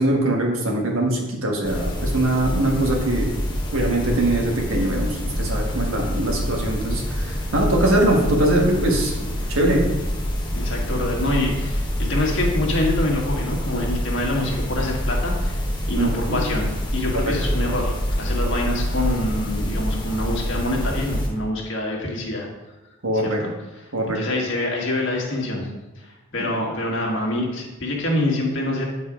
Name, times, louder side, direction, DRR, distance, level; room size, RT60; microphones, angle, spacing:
voice 1, 0.0-3.3 3.7-9.9 16.0-16.4 17.2-17.3 23.0-23.4 23.9-24.2, right 1 dB, 65° right, 0 dB, 1.7 m, -22 dB
sound 1, 1.6-21.3, equal, 20° left, 1.0 m, -26 dB
voice 2, 10.5-15.5 15.9-22.5 23.1-23.5 24.1-25.7 26.0-26.1 26.3-28.9, left 1 dB, 55° left, -1 dB, 1.7 m, -25 dB
9.3 x 4.2 x 5.0 m, 1.1 s
head